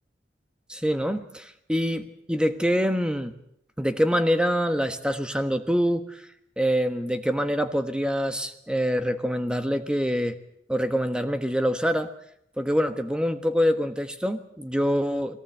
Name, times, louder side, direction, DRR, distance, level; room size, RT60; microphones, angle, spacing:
voice 1, 0.7-3.3 3.8-6.2 6.6-10.4 10.7-12.1 12.6-15.4, equal, 5° right, 8 dB, 1.3 m, -25 dB
22.0 x 18.0 x 8.1 m, 0.74 s
head